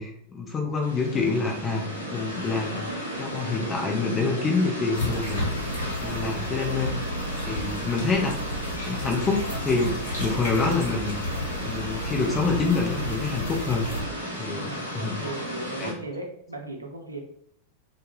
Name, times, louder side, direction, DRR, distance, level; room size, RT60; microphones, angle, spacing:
voice 1, 0.0-2.8 3.2-5.5 6.0-6.9 7.5-8.6 8.9-11.1 11.6-13.9 14.4-15.2 15.8-15.9, left 4 dB, 20° left, 0 dB, 0.5 m, -27 dB
sound 1, 0.8-15.9, equal, 90° left, 0.6 m, -34 dB
sound 2, 4.9-14.0, left 1 dB, 65° left, 0.9 m, -33 dB
voice 2, 14.5-17.2, right 2 dB, 80° right, 1 dB, 0.4 m, -38 dB
2.1 x 2.0 x 3.0 m, 0.67 s
figure-of-eight pair, 90°, 0 cm